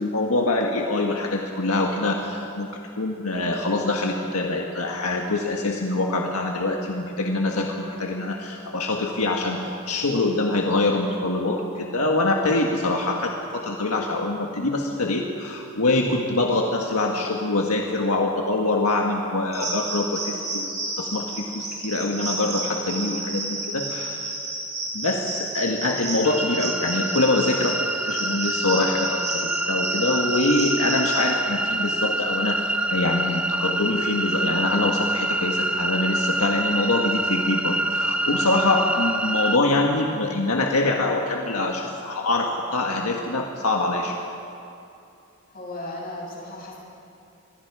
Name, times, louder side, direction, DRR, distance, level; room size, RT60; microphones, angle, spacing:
voice 1, 0.0-2.7 3.0-9.6 9.9-20.7 21.0-24.3 24.9-44.2, left 2 dB, 85° left, 1 dB, 1.6 m, -24 dB
sound 1, 19.5-31.3, right 2 dB, 30° right, 7.2 m, -31 dB
sound 2, 26.2-39.6, right 1 dB, 5° right, 0.7 m, -26 dB
voice 2, 45.5-46.8, left 1 dB, 45° left, -3 dB, 6.8 m, -36 dB
26.0 x 22.5 x 4.9 m, 2.7 s
head